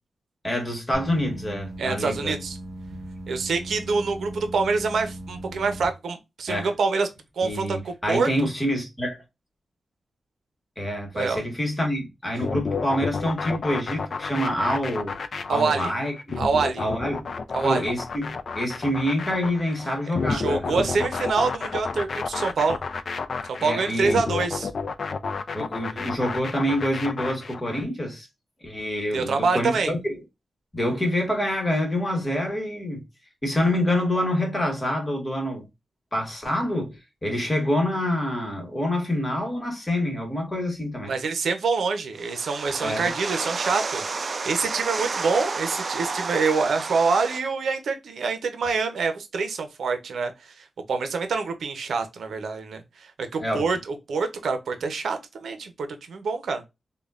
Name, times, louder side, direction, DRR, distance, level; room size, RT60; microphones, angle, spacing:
voice 1, 0.4-2.4 6.5-6.7 7.4-9.2 10.8-15.2 15.5-16.1 16.8-17.2 17.6-20.9 23.6-24.2 25.5-28.3 28.6-30.2 30.7-33.0 33.4-35.7 36.1-41.1 42.8-43.1 53.4-53.7, left 1 dB, 20° left, 1.2 m, -26 dB
sound 1, 0.9-5.8, right 1 dB, ahead, 0.8 m, -38 dB
voice 2, 1.8-2.6 3.3-7.1 7.4-8.3 11.1-11.4 15.5-15.9 16.4-16.8 17.5-17.8 20.3-22.8 23.5-24.7 29.1-29.9 41.1-55.7 56.1-56.6, right 4 dB, 80° right, 0.6 m, -26 dB
sound 2, 12.4-27.8, left 4 dB, 50° left, 0.3 m, -31 dB
sound 3, 42.2-47.4, right 4 dB, 45° right, 0.3 m, -31 dB
5.1 x 2.2 x 2.3 m
wide cardioid pair, 150°, 0 cm